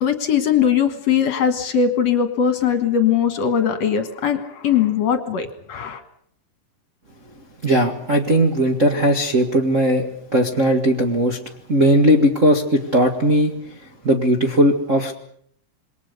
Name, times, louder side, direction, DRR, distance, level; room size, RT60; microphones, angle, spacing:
voice 1, 0.0-6.0, left 8 dB, 55° left, 9 dB, 2.6 m, -20 dB
voice 2, 7.6-11.4 11.7-13.7 14.0-15.1, equal, 35° right, 2 dB, 1.4 m, -18 dB
27.5 x 22.5 x 6.8 m, 0.65 s
omnidirectional pair, 3.8 m